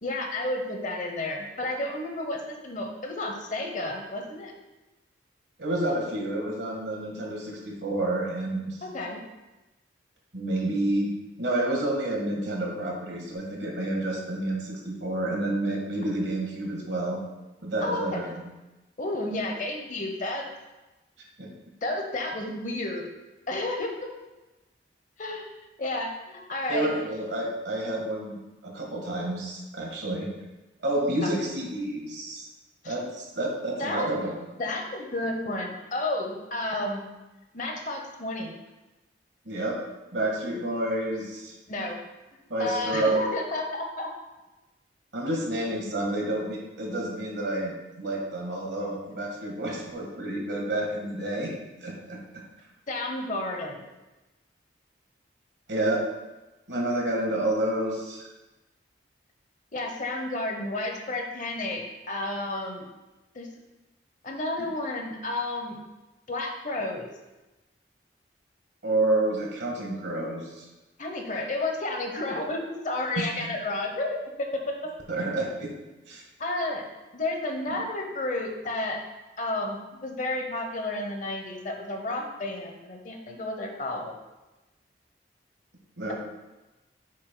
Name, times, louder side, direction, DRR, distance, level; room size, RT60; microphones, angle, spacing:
voice 1, 0.0-4.5 8.8-9.2 17.8-18.2 19.0-20.4 21.8-23.0 23.5-24.0 25.2-25.5 25.8-26.9 31.2-31.3 32.8-32.9 33.8-34.1 34.6-37.0 37.5-38.5 41.7-42.0 42.6-44.1 52.9-53.8 59.7-62.8 63.3-63.5 64.2-65.8 66.3-67.1 71.0-74.9 76.4-76.8 77.1-79.0 79.4-84.1, left 2 dB, 40° left, 2 dB, 0.9 m, -31 dB
voice 2, 5.6-8.8 10.3-11.1 11.4-17.2 17.6-18.5 21.4-21.5 26.7-28.4 28.6-30.3 30.8-32.5 32.8-34.5 39.4-39.8 40.1-41.5 42.5-43.3 45.1-51.5 51.8-52.2 55.7-56.0 56.7-58.2 64.6-64.7 68.8-70.6 73.2-73.3 75.1-75.7 76.1-76.2 77.7-77.8 86.0-86.1, right 1 dB, 70° right, -1 dB, 1.5 m, -29 dB
8.4 x 6.3 x 2.2 m, 1.1 s
head